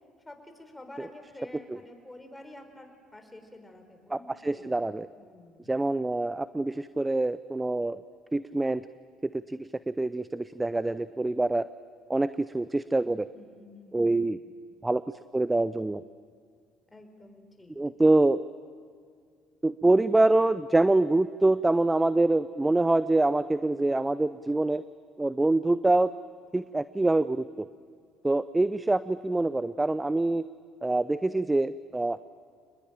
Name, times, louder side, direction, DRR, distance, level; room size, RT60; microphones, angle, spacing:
voice 1, 0.2-5.8 13.3-14.6 16.9-17.7, left 2 dB, 15° left, 5 dB, 4.7 m, -49 dB
voice 2, 4.1-5.1 5.7-8.0 8.3-8.8 9.2-11.7 12.1-13.3 13.9-14.4 14.8-15.0 15.3-16.0 17.8-18.4 19.6-24.8 25.2-26.1 26.5-27.7 28.2-30.4 30.8-32.2, right 2 dB, 15° right, 15 dB, 0.6 m, -25 dB
28.0 x 20.5 x 8.9 m, 2.1 s
hypercardioid pair, 60°, 0 cm